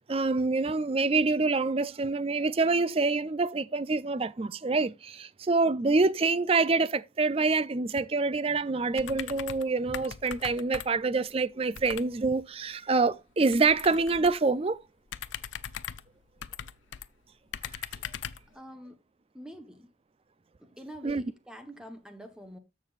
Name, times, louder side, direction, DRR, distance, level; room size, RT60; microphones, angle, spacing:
voice 1, 0.1-14.8 21.0-21.2, right 3 dB, 30° right, 0.4 m, -26 dB
sound 1, 8.9-9.7 9.9-11.1 11.7-12.1 13.5-14.5 15.1-17.1 17.5-18.5, left 8 dB, 80° left, 0.6 m, -40 dB
voice 2, 18.5-19.0 19.3-19.9 20.6-22.6, equal, 5° right, 1.1 m, -46 dB
14.0 x 6.2 x 2.5 m
head